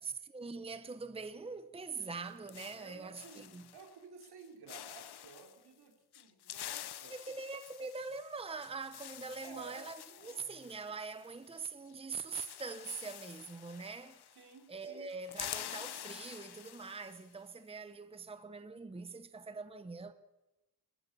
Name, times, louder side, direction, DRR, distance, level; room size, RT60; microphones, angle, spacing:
voice 1, 0.0-3.7 7.1-14.3 14.7-20.1, right 4 dB, 15° right, 0.9 m, -43 dB
sound 1, 2.0-3.9 4.2-4.4 4.7-5.5 6.1-11.6 11.9-12.0 12.2-14.6 14.8-17.3, left 12 dB, 85° left, 0.8 m, -48 dB
voice 2, 2.8-7.2 9.4-10.4 14.4-15.1, right 5 dB, 80° right, 4.5 m, -54 dB
27.5 x 15.5 x 7.1 m
wide cardioid pair, 125°, 38 cm